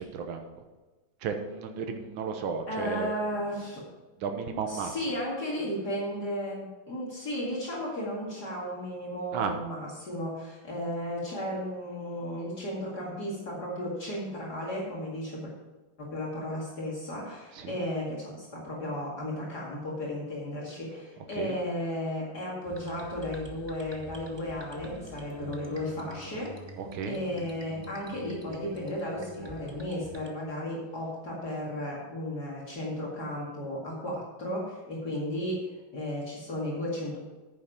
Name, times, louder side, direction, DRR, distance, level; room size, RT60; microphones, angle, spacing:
voice 1, 0.1-0.4 1.2-3.1 4.2-4.9 9.3-9.5 17.6-17.7 21.4-21.6 26.8-27.2, right 6 dB, 80° right, 5 dB, 1.8 m, -33 dB
voice 2, 2.7-3.8 4.7-15.5 16.0-26.6 27.1-37.2, left 1 dB, 55° left, -4 dB, 2.6 m, -34 dB
sound 1, 22.6-30.3, right 1 dB, 20° right, 0.7 m, -45 dB
9.6 x 7.3 x 5.8 m, 1.2 s
omnidirectional pair, 2.2 m